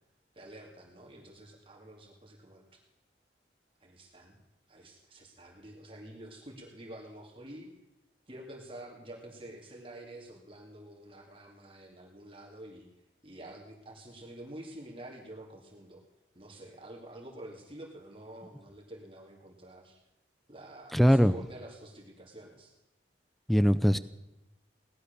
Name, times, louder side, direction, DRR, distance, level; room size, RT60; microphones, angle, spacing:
voice 1, 0.3-2.8 3.8-4.4 4.7-7.7 8.3-12.9 13.2-16.0 16.3-20.0 20.5-22.7, right 1 dB, 30° right, -1 dB, 2.5 m, -48 dB
voice 2, 20.9-21.3 23.5-24.0, equal, ahead, 12 dB, 0.5 m, -21 dB
18.0 x 11.5 x 6.7 m, 0.93 s
head